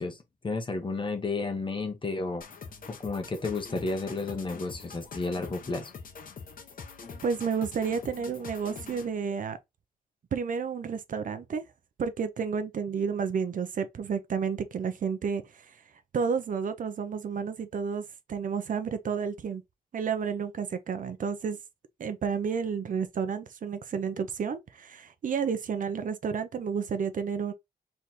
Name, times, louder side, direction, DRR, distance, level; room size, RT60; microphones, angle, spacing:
voice 1, 0.0-2.4 3.0-5.9, left 3 dB, 30° left, 1.2 m, -32 dB
sound 1, 2.4-9.2, left 5 dB, 65° left, 1.1 m, -44 dB
voice 2, 7.2-9.6 10.3-11.6 12.0-15.7 16.1-18.0 18.3-19.6 19.9-21.6 22.0-27.5, right 6 dB, 60° right, 0.7 m, -31 dB
4.2 x 3.5 x 2.8 m
wide cardioid pair, 130°, 16 cm